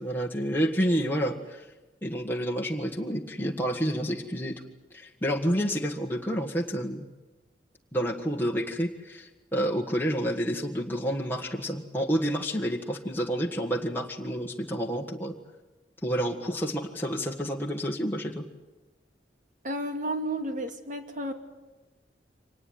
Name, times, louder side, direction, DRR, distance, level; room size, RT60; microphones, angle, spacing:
voice 1, 0.0-1.6 2.0-4.5 4.9-7.0 7.9-15.3 16.0-18.4, equal, 10° left, 0 dB, 1.7 m, -29 dB
voice 2, 19.6-21.3, right 1 dB, 45° right, 6 dB, 2.6 m, -32 dB
25.0 x 19.5 x 9.3 m, 1.1 s
head